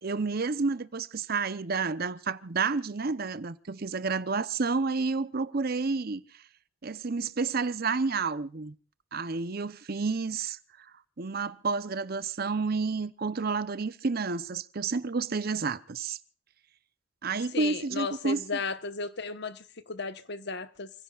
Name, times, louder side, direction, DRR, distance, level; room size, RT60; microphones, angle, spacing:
voice 1, 0.0-6.2 6.8-8.7 9.1-10.9 11.2-16.2 17.2-18.4, right 4 dB, 50° right, 0.8 m, -30 dB
voice 2, 17.5-20.9, left 4 dB, 60° left, 1.2 m, -35 dB
29.0 x 16.0 x 2.4 m
head